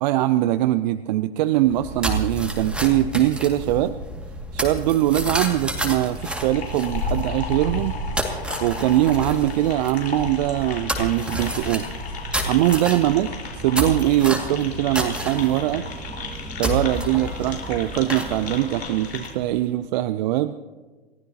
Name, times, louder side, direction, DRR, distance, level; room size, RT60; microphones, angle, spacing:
voice 1, 0.0-4.0 4.5-8.0 8.6-11.9 12.4-13.3 13.6-15.8 16.6-20.5, right 14 dB, 45° right, 12 dB, 0.6 m, -22 dB
sound 1, 1.6-19.6, equal, 5° right, 2.2 m, -30 dB
sound 2, 6.0-19.3, left 4 dB, 85° left, 4.6 m, -36 dB
29.0 x 14.5 x 2.9 m, 1.3 s
hypercardioid pair, 115°, 31 cm